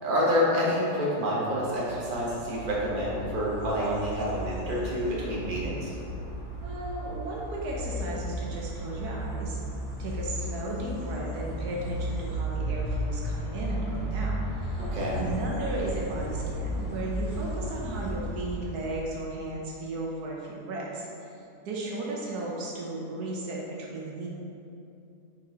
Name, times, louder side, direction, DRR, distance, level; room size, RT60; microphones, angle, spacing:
voice 1, 0.0-5.9 14.8-15.2, equal, 35° right, -6 dB, 1.2 m, -28 dB
sound 1, 1.8-19.2, right 1 dB, 20° left, 1.5 m, -34 dB
voice 2, 6.6-9.6 10.0-14.9 15.1-24.3, right 2 dB, 75° right, -3 dB, 1.4 m, -35 dB
5.9 x 4.7 x 3.8 m, 2.7 s
omnidirectional pair, 1.7 m